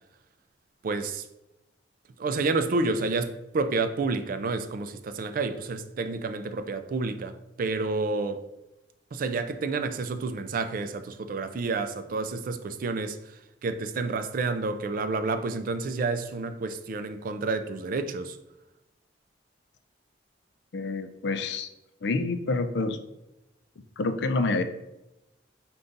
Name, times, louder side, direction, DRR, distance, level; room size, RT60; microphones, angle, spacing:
voice 1, 0.8-1.3 2.2-8.5 9.1-18.4, right 3 dB, 50° right, 0.4 m, -29 dB
voice 2, 20.7-21.7 22.0-23.0 24.0-24.6, left 3 dB, 70° left, 0.4 m, -27 dB
5.2 x 2.3 x 3.8 m
head